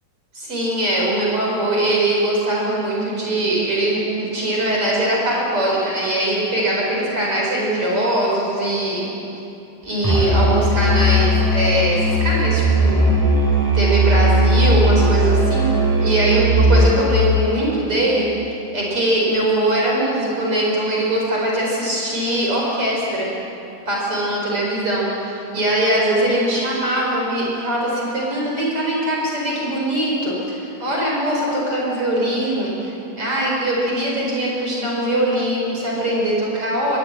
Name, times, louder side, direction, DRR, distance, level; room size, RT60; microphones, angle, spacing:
voice 1, 0.3-9.1 9.8-13.1 13.7-15.7 16.0-18.3 18.7-23.3 23.9-32.9 33.2-37.0, right 1 dB, 40° right, -3 dB, 5.8 m, -21 dB
Musical instrument, 10.0-17.1, right 1 dB, 5° right, 3.6 m, -17 dB
24.5 x 20.0 x 9.2 m, 2.8 s
omnidirectional pair, 3.7 m